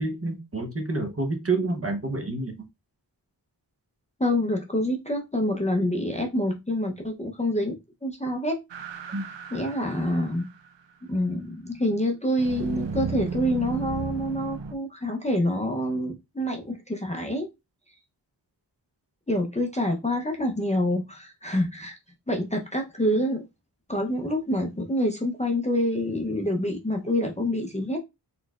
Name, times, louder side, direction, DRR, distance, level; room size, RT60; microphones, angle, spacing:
voice 1, 0.0-2.7 9.1-9.2, right 3 dB, 30° right, 0.8 m, -28 dB
voice 2, 4.2-8.6 9.5-10.5 11.1-17.5 19.3-22.0 22.3-23.4 23.9-28.0, left 1 dB, 15° left, 0.6 m, -27 dB
sound 1, 8.7-10.7 12.4-14.7, right 4 dB, 75° right, 0.6 m, -34 dB
4.2 x 3.1 x 2.4 m
wide cardioid pair, 75°, 44 cm